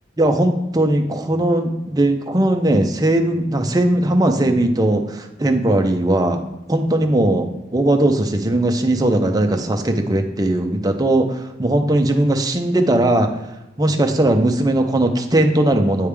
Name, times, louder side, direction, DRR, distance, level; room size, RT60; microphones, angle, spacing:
voice 1, 0.2-6.4 6.7-13.4 13.8-16.1, right 1 dB, 20° right, 4 dB, 0.5 m, -18 dB
9.4 x 3.3 x 3.4 m, 0.96 s
head